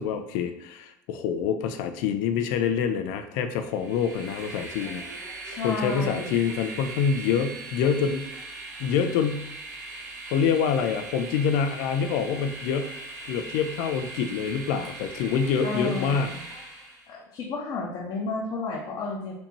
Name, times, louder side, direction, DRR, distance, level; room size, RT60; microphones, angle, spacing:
voice 1, 0.0-5.0 5.6-8.3 8.8-9.5 10.3-12.9 13.2-16.3, left 7 dB, 65° left, 8 dB, 0.5 m, -26 dB
Train, 3.6-17.1, right 3 dB, 80° right, 1.1 m, -40 dB
voice 2, 5.4-6.4 15.6-16.4 17.1-19.3, left 3 dB, 50° left, -3 dB, 0.8 m, -32 dB
4.4 x 2.8 x 3.0 m, 0.79 s
hypercardioid pair, 75°, 9 cm